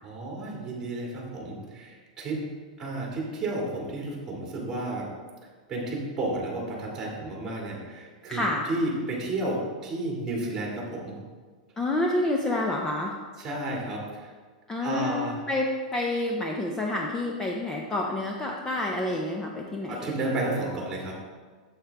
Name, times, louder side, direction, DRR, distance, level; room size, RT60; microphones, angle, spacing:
voice 1, 0.0-2.4 2.8-5.1 5.7-11.2 13.4-14.3 14.8-15.4 19.9-21.1, right 2 dB, 15° right, -3 dB, 2.1 m, -32 dB
voice 2, 8.3-8.6 11.8-13.1 14.7-20.1, left 2 dB, 15° left, 0 dB, 0.6 m, -28 dB
8.5 x 7.3 x 3.4 m, 1.5 s
supercardioid pair, 150°, 4 cm